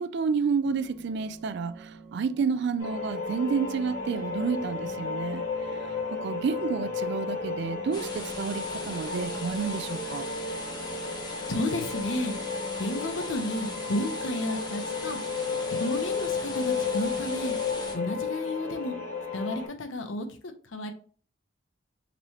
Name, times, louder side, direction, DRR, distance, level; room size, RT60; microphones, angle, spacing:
voice 1, 0.0-5.5 6.2-10.3, right 5 dB, 60° right, 0.3 m, -30 dB
sound 1, 0.6-18.1, right 2 dB, 40° right, 1.2 m, -47 dB
sound 2, 2.8-19.7, left 4 dB, 70° left, 2.1 m, -33 dB
sound 3, 7.9-18.0, left 2 dB, 20° left, 0.9 m, -41 dB
voice 2, 11.5-12.3 12.8-15.2 15.7-17.6 17.9-19.0 19.3-20.9, left 1 dB, 90° left, 0.8 m, -32 dB
5.2 x 3.1 x 2.8 m
head